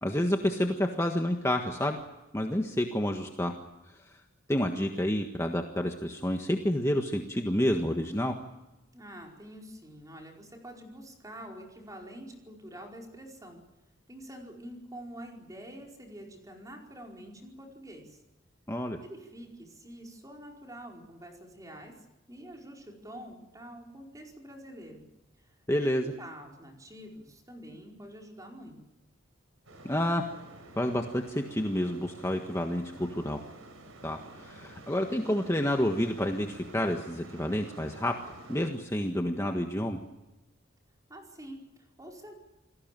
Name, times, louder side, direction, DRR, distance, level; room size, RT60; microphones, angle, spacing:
voice 1, 0.0-2.0 2.3-3.5 4.0-4.2 4.5-8.3 18.7-19.0 25.7-26.1 29.8-30.2 30.8-33.4 34.0-38.1 38.5-40.0, left 1 dB, 15° left, 3 dB, 1.5 m, -29 dB
voice 2, 8.9-13.6 14.1-18.2 19.0-22.0 22.3-25.0 25.4-28.8 41.1-42.3, right 1 dB, 15° right, 1 dB, 4.8 m, -47 dB
sound 1, 29.7-38.7, right 2 dB, 90° right, 5.3 m, -50 dB
28.5 x 19.5 x 7.7 m, 1.0 s
head